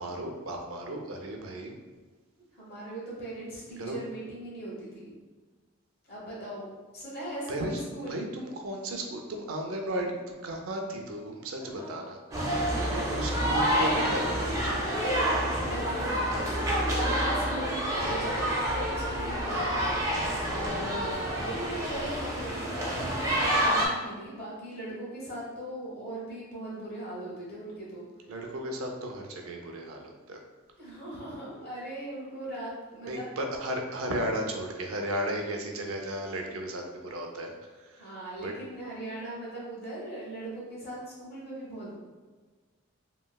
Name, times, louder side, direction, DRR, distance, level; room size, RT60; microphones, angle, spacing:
voice 1, 0.0-1.7 3.8-4.0 7.5-12.2 12.5-14.8 28.3-30.4 33.0-38.1 38.4-38.5, right 1 dB, 80° right, 2 dB, 0.5 m, -35 dB
voice 2, 2.5-5.1 6.1-8.2 11.6-11.9 12.7-13.3 15.1-19.7 20.4-28.1 30.8-33.3 38.0-42.0, right 1 dB, 50° left, -6 dB, 1.1 m, -39 dB
sound 1, 12.3-23.9, equal, 15° right, 0.4 m, -28 dB
3.0 x 2.7 x 2.2 m, 1.4 s
head